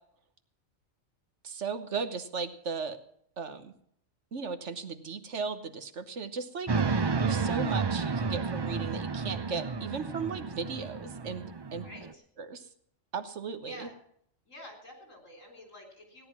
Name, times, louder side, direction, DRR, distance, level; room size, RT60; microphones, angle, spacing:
voice 1, 1.4-3.0 3.4-3.7 4.3-11.9 12.4-12.6 13.1-13.9, right 5 dB, 65° right, 10 dB, 1.4 m, -36 dB
sound 1, 6.7-12.1, right 4 dB, 45° right, 0.3 m, -31 dB
voice 2, 11.8-12.2 13.6-13.9 14.5-16.3, left 1 dB, 80° left, 3 dB, 4.3 m, -48 dB
17.0 x 10.0 x 6.0 m, 0.68 s
omnidirectional pair, 1.3 m